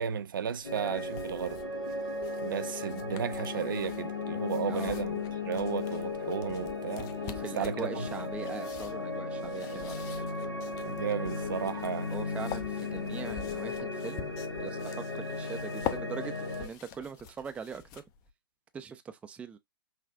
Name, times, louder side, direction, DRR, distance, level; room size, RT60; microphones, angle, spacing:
voice 1, 0.0-1.6 2.4-7.1 7.5-8.1 10.8-12.1, right 8 dB, 65° right, 0.5 m, -34 dB
sound 1, 0.6-16.7, left 3 dB, 85° left, 1.4 m, -36 dB
sound 2, 0.6-18.3, left 9 dB, 30° left, 0.6 m, -46 dB
voice 2, 7.2-10.3 12.1-14.3 14.6-16.3 16.6-18.0 18.7-19.6, right 6 dB, 10° right, 0.4 m, -41 dB
5.7 x 2.4 x 2.5 m
figure-of-eight pair, 110°, 12 cm